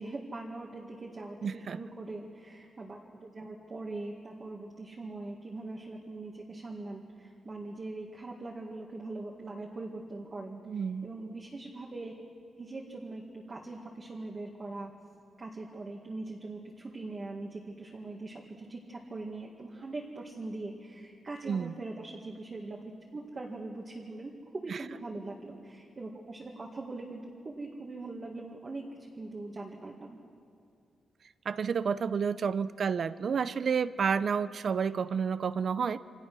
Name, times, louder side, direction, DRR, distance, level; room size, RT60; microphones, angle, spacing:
voice 1, 0.0-12.2 12.6-14.9 15.4-28.9 29.2-30.2, right 2 dB, 30° right, -1 dB, 2.1 m, -42 dB
voice 2, 1.4-1.8 10.7-11.1 21.5-21.7 24.7-24.8 31.5-36.0, right 6 dB, 45° right, 15 dB, 0.7 m, -30 dB
28.0 x 26.5 x 6.3 m, 2.3 s
wide cardioid pair, 160°, 0 cm